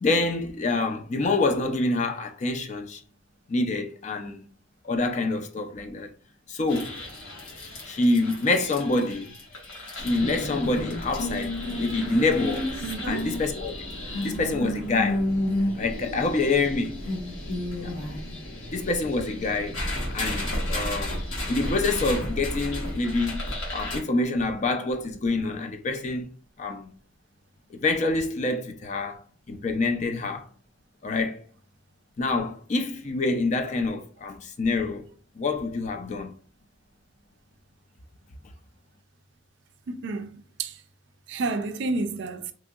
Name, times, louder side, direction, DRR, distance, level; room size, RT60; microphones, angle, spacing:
voice 1, 0.0-3.0 3.5-4.4 4.8-6.1 6.5-7.0 7.9-9.3 9.9-12.7 13.0-13.7 14.2-15.2 15.8-17.0 17.8-17.9 18.7-19.8 20.1-21.2 21.5-23.4 23.7-26.3 26.6-26.8 27.7-29.2 29.5-30.5 31.0-31.4 32.2-35.0 35.4-36.3, left 3 dB, 35° left, 0.3 m, -26 dB
sound 1, 6.7-24.0, left 1 dB, 85° left, 1.1 m, -32 dB
voice 2, 12.8-13.2 39.9-40.8 41.3-42.5, right 3 dB, 60° right, 0.3 m, -30 dB
2.9 x 2.6 x 2.3 m
head